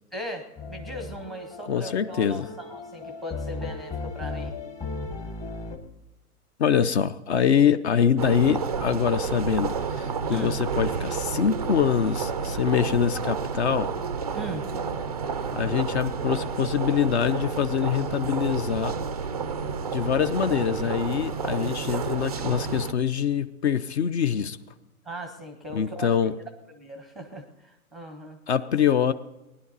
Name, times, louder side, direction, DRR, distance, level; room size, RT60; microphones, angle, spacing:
voice 1, 0.1-4.6 10.3-10.6 14.3-14.6 25.0-26.1 26.8-28.4, right 1 dB, ahead, 7 dB, 0.7 m, -38 dB
sound 1, 0.6-5.8, left 3 dB, 15° left, 1.0 m, -36 dB
voice 2, 1.7-2.5 6.6-13.9 15.5-19.0 19.9-24.6 25.7-26.3 28.5-29.1, left 8 dB, 45° left, 13 dB, 0.7 m, -24 dB
sound 2, 8.2-22.9, right 6 dB, 30° right, 0.4 m, -30 dB
19.5 x 11.0 x 4.1 m, 1.0 s
hypercardioid pair, 140°, 45 cm